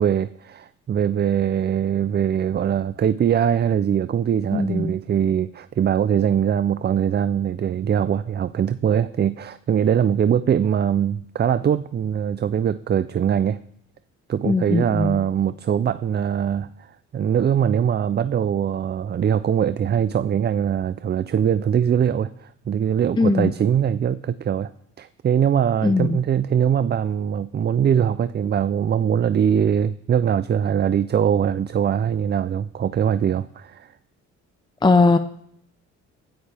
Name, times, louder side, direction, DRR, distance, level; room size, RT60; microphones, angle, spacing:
voice 1, 0.0-13.6 14.3-24.7 25.0-33.9, right 8 dB, 35° right, 14 dB, 0.4 m, -22 dB
voice 2, 4.5-4.9 14.4-15.2 23.2-23.5 25.8-26.2 34.8-35.2, left 3 dB, 15° left, 10 dB, 0.6 m, -19 dB
15.5 x 14.5 x 3.4 m, 0.72 s
cardioid pair, 90°, 30 cm